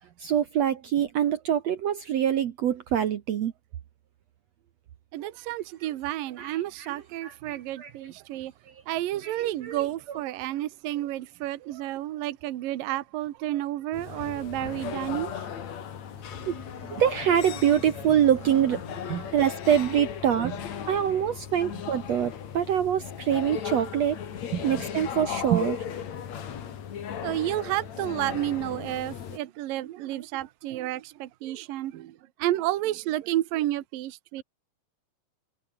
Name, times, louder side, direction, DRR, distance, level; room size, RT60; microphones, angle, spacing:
voice 1, 0.2-3.5 5.8-8.1 9.2-10.2 16.4-16.6 16.9-20.5 20.9-24.2 24.6-25.8, right 9 dB, 60° right, 2.0 m, -25 dB
voice 2, 5.1-8.5 8.9-15.3 19.1-19.2 25.5-25.6 27.2-32.1 32.4-34.4, right 14 dB, 75° right, 2.8 m, -30 dB
sound 1, 13.9-29.4, left 8 dB, 55° left, 3.1 m, -37 dB
omnidirectional pair, 4.1 m